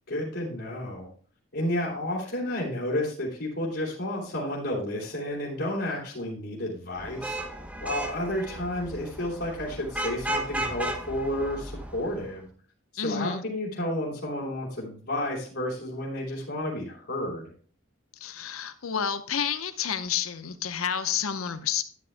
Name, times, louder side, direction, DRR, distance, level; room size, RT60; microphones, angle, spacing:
voice 1, 0.1-1.1 1.5-7.4 7.8-12.4 12.9-17.5, left 1 dB, 60° left, -5 dB, 2.9 m, -31 dB
Vehicle horn car horn honking / Traffic noise roadway noise, 7.0-12.3, right 1 dB, 5° right, 0.8 m, -34 dB
voice 2, 13.0-13.4 18.2-21.8, left 8 dB, 90° left, 10 dB, 0.8 m, -30 dB
12.0 x 9.6 x 2.2 m, 0.43 s
head